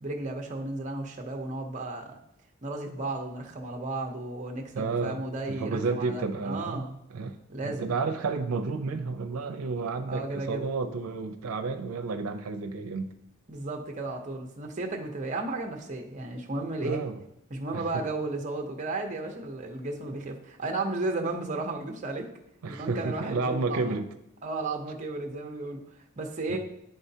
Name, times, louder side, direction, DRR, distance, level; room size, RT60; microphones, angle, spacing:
voice 1, 0.0-2.2 2.6-7.0 7.5-7.9 10.1-10.7 13.5-17.0 17.5-22.3 22.7-23.9 24.4-25.8 26.2-26.6, right 2 dB, 35° right, 2 dB, 0.7 m, -34 dB
voice 2, 4.7-5.2 5.5-6.8 7.1-7.4 7.6-13.1 16.8-17.2 17.7-18.0 22.6-24.1 26.5-26.6, right 4 dB, 80° right, 5 dB, 0.5 m, -31 dB
10.5 x 3.9 x 2.7 m, 0.82 s
head